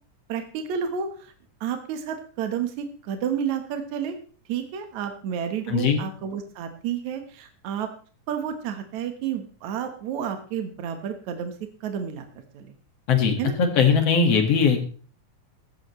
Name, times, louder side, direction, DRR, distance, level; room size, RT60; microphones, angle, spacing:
voice 1, 0.3-1.3 1.6-4.2 4.5-7.9 8.3-11.5 11.8-12.3 12.5-12.7 13.4-13.6, right 8 dB, 70° right, 6 dB, 2.6 m, -30 dB
voice 2, 5.7-6.0 13.1-14.8, left 6 dB, 55° left, 5 dB, 2.8 m, -20 dB
15.5 x 13.0 x 3.2 m, 0.40 s
omnidirectional pair, 3.5 m